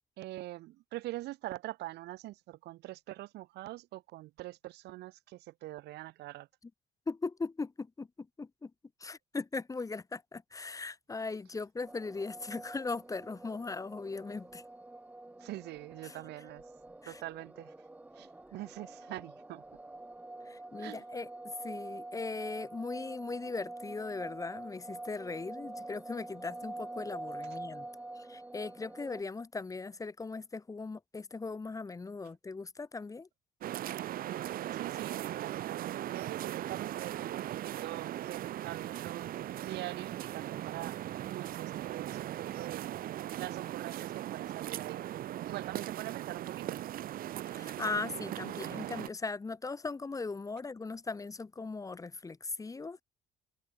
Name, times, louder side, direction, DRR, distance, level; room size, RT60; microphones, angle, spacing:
voice 1, 0.2-6.5 15.4-16.6 17.0-17.7 18.2-19.6 20.8-21.0 34.7-41.0 41.3-45.0 45.5-46.9, right 17 dB, 80° right, 1.9 m, -44 dB
voice 2, 7.1-8.7 9.0-14.6 16.0-16.2 17.0-17.2 20.4-27.9 28.1-33.3 47.5-53.0, left 4 dB, 20° left, 1.3 m, -39 dB
sound 1, 11.8-29.2, right 2 dB, 10° right, 0.9 m, -46 dB
sound 2, 33.6-49.1, right 13 dB, 60° right, 0.8 m, -39 dB
open air
cardioid pair, 110°, 17 cm